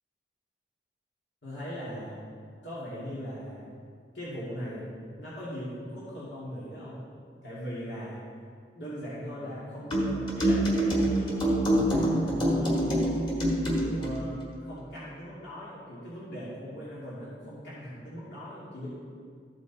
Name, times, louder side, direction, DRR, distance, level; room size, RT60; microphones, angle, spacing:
voice 1, 1.4-2.2 2.6-3.7 4.1-7.1 7.4-8.2 8.8-12.9 13.8-18.9, equal, 85° left, -10 dB, 2.5 m, -39 dB
sound 1, 9.9-14.2, right 1 dB, 30° left, 1.6 m, -26 dB
14.0 x 5.3 x 4.2 m, 2.1 s
head